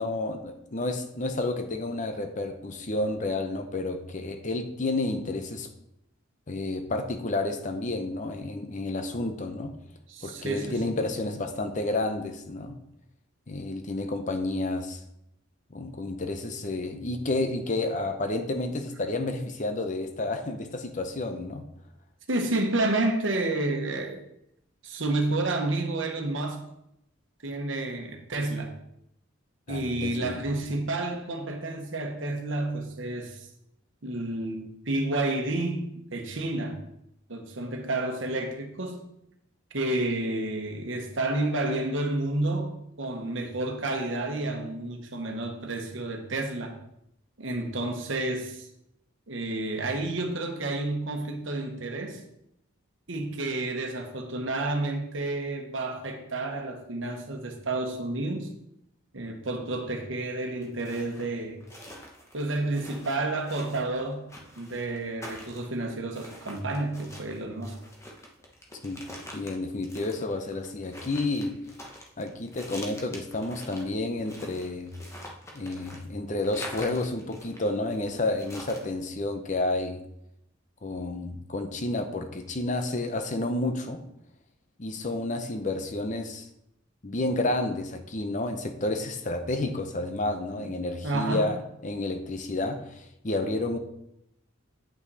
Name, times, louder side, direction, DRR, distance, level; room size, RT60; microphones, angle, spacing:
voice 1, 0.0-5.7 6.5-9.8 10.2-12.8 13.5-15.0 15.7-21.6 29.7-30.4 68.8-69.0 69.3-71.5 72.2-74.9 75.5-80.0 80.8-84.0 84.8-86.5 87.0-93.8, left 2 dB, 35° left, 7 dB, 0.7 m, -30 dB
voice 2, 10.1-10.9 22.3-24.2 24.8-26.6 27.4-28.7 29.7-33.5 34.0-36.8 37.3-39.1 39.7-46.8 47.4-48.7 49.3-52.2 53.1-58.5 59.1-61.6 62.3-64.3 64.6-67.7 90.5-90.7 91.0-91.5, right 2 dB, 65° right, 4 dB, 1.2 m, -30 dB
sound 1, 60.4-78.9, left 1 dB, 15° left, 1.1 m, -46 dB
8.6 x 5.8 x 4.1 m, 0.79 s
head